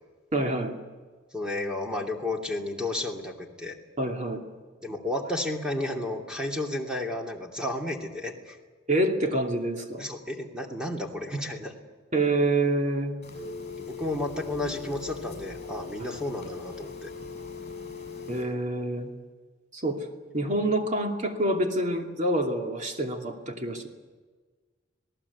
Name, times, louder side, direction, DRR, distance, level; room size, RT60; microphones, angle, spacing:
voice 1, 0.3-0.8 4.0-4.4 8.9-10.1 12.1-13.2 18.3-19.1 19.7-20.0 20.3-23.9, right 1 dB, 35° right, 2 dB, 2.7 m, -27 dB
voice 2, 1.3-3.8 4.8-8.6 10.0-11.7 13.8-17.1, left 1 dB, 5° right, 1 dB, 2.7 m, -32 dB
Telephone, 13.2-18.4, left 5 dB, 35° left, 8.0 m, -40 dB
27.0 x 18.5 x 8.4 m, 1.4 s
head